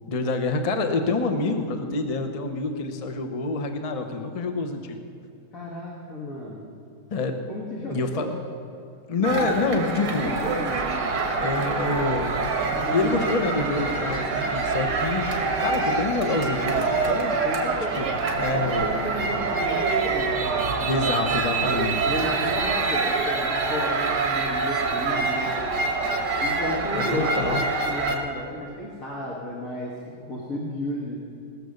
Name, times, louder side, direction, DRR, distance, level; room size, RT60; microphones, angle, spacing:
voice 1, 0.1-5.0 7.1-7.4 7.9-8.3 9.1-10.4 11.4-12.4 12.9-17.4 18.0-18.1 18.4-18.9 20.9-22.1 26.9-27.6, left 3 dB, 30° left, 6 dB, 0.7 m, -27 dB
voice 2, 5.5-6.7 7.5-8.3 8.8-8.9 9.2-9.5 9.8-10.9 12.7-13.2 17.4-21.0 22.0-25.5 26.2-29.9 30.3-31.2, left 1 dB, 50° left, -4 dB, 1.9 m, -34 dB
sound 1, 9.2-28.2, right 4 dB, 80° right, 2.0 m, -25 dB
19.5 x 6.9 x 6.5 m, 2.6 s
omnidirectional pair, 1.8 m